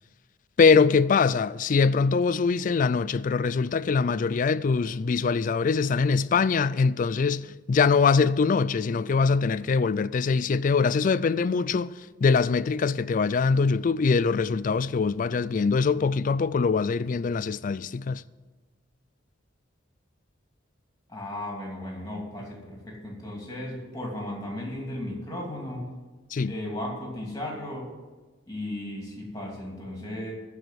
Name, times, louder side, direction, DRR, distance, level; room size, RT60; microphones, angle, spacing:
voice 1, 0.6-18.2 26.3-26.5, left 5 dB, 40° left, 0.3 m, -23 dB
voice 2, 21.1-25.9 26.4-27.9 28.5-30.3, left 1 dB, 20° left, 2.7 m, -35 dB
14.0 x 4.9 x 9.2 m
head